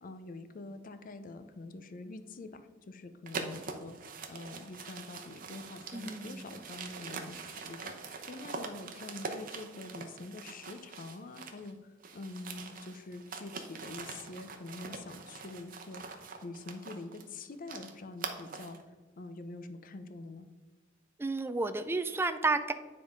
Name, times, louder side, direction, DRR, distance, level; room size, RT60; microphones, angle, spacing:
voice 1, 0.0-4.0 4.3-18.8 19.2-20.5, left 2 dB, 45° left, 10 dB, 0.5 m, -45 dB
sound 1, 3.3-11.7 12.0-18.8, right 4 dB, 45° right, 0.8 m, -44 dB
voice 2, 5.9-6.6 21.2-22.7, right 3 dB, 10° right, 9 dB, 0.3 m, -32 dB
9.3 x 3.6 x 5.0 m, 1.3 s
head